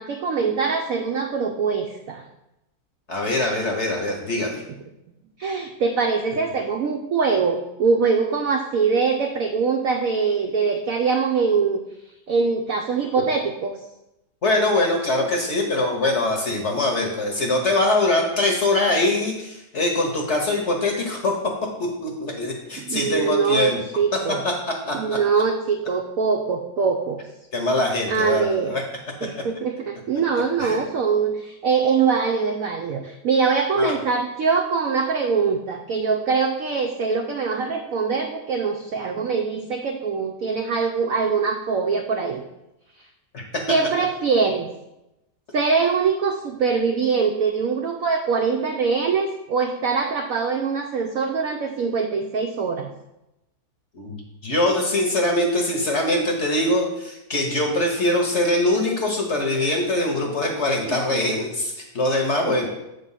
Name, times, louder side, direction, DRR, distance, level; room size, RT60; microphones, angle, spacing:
voice 1, 0.0-2.2 5.4-11.8 12.3-13.8 22.8-23.7 24.0-24.4 24.9-27.2 28.1-28.8 29.2-42.4 43.7-44.7 45.5-52.9 60.9-61.2 62.5-62.6, right 5 dB, 85° right, 3 dB, 0.7 m, -23 dB
voice 2, 3.1-4.6 14.4-23.8 24.3-25.2 27.5-28.8 30.6-30.8 33.8-34.0 43.3-43.6 53.9-62.7, left 2 dB, 50° left, 1 dB, 0.9 m, -23 dB
7.6 x 3.7 x 5.5 m, 0.90 s
omnidirectional pair, 2.1 m